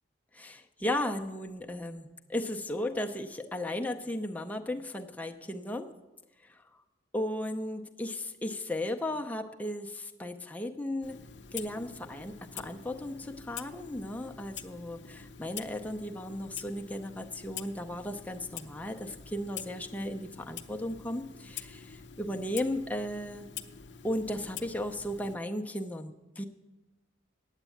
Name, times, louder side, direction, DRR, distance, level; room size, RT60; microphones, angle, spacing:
voice 1, 0.3-5.9 7.1-11.2 11.5-23.5 24.0-26.4, left 1 dB, 10° left, 3 dB, 0.6 m, -35 dB
Clock, 11.0-25.4, left 8 dB, 60° left, 0.6 m, -46 dB
9.0 x 8.1 x 8.4 m, 1.1 s
head